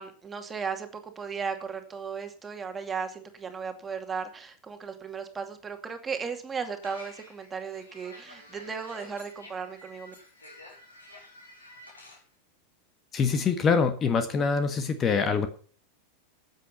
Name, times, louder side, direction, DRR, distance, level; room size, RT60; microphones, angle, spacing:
voice 1, 0.0-10.1, right 6 dB, 15° right, 6 dB, 2.4 m, -36 dB
sound 1, 6.8-12.2, left 1 dB, 80° left, 6.7 m, -50 dB
voice 2, 13.1-15.5, left 5 dB, 25° left, 8 dB, 1.5 m, -24 dB
14.0 x 9.0 x 5.7 m, 0.42 s
figure-of-eight pair, 90°, 0 cm